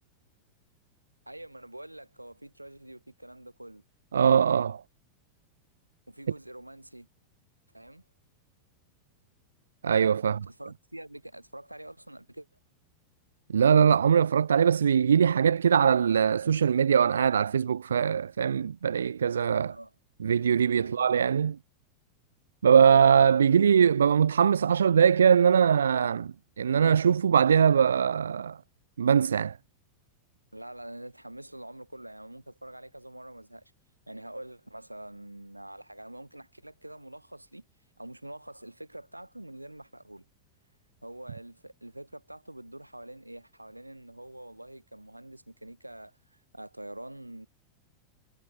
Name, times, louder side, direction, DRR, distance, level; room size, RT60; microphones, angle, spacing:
voice 1, 1.3-3.8 6.1-7.1 7.7-8.1 10.2-12.5 19.7-19.9 20.8-21.0 23.6-23.7 30.5-33.7 34.1-37.7 38.0-40.3 41.0-47.5, right 1 dB, 85° right, 4.4 m, -45 dB
voice 2, 4.1-4.8 9.8-10.4 13.5-19.7 20.2-21.6 22.6-28.6 29.0-29.6, right 7 dB, 70° right, 0.9 m, -22 dB
figure-of-eight pair, 90°, 0 cm